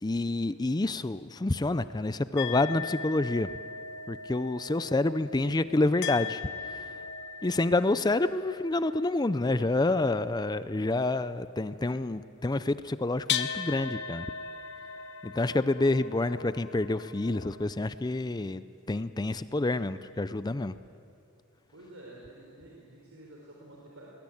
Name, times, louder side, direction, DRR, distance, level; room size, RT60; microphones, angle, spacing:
voice 1, 0.0-3.5 4.1-6.9 7.4-14.3 15.2-20.7, left 2 dB, 20° left, 13 dB, 0.4 m, -28 dB
sound 1, 2.4-10.6 12.5-12.6 12.9-17.7, left 7 dB, 50° left, 1.0 m, -39 dB
voice 2, 21.7-24.2, right 1 dB, 65° right, -3 dB, 4.1 m, -50 dB
22.5 x 20.0 x 8.6 m, 2.7 s
head